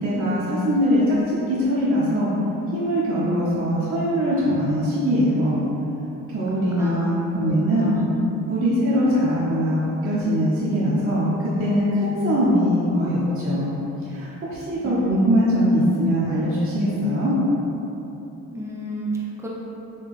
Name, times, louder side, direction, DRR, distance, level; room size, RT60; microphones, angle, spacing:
voice 1, 0.0-2.3 2.7-5.6 6.3-8.0 8.5-11.3 11.6-13.7 14.0-17.4, equal, 45° right, -9 dB, 0.7 m, -21 dB
voice 2, 6.7-8.1 14.8-15.5 18.5-19.5, right 1 dB, 10° right, -4 dB, 0.6 m, -32 dB
3.4 x 2.3 x 3.6 m, 2.9 s
cardioid pair, 90°, 30 cm